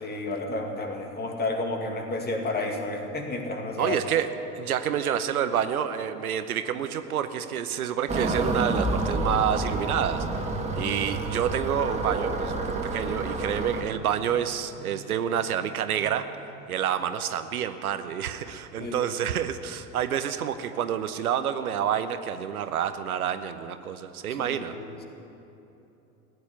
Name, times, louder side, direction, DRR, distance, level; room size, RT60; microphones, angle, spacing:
voice 1, 0.0-4.0 18.8-19.1 24.3-25.0, left 2 dB, 20° left, 3 dB, 2.2 m, -31 dB
voice 2, 3.8-4.3 4.6-10.3 10.7-16.3 16.7-24.7, right 9 dB, 70° right, 10 dB, 0.9 m, -28 dB
sound 1, 8.1-13.8, right 2 dB, 15° right, 1.8 m, -29 dB
sound 2, 16.5-17.2, right 1 dB, 90° left, 3.6 m, -50 dB
15.5 x 9.8 x 9.6 m, 3.0 s
figure-of-eight pair, 80°, 45 cm